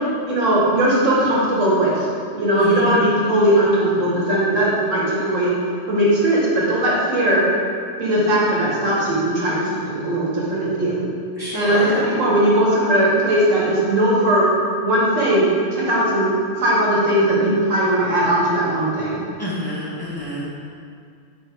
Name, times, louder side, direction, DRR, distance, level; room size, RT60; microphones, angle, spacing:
voice 1, 0.3-2.1 2.3-5.5 5.9-7.5 8.0-11.0 11.5-14.5 14.8-19.2, right 1 dB, 90° right, -6 dB, 1.7 m, -18 dB
voice 2, 2.6-3.0 11.4-12.0 19.4-20.6, equal, 20° left, -8 dB, 0.9 m, -28 dB
5.3 x 3.9 x 4.5 m, 2.3 s
omnidirectional pair, 1.3 m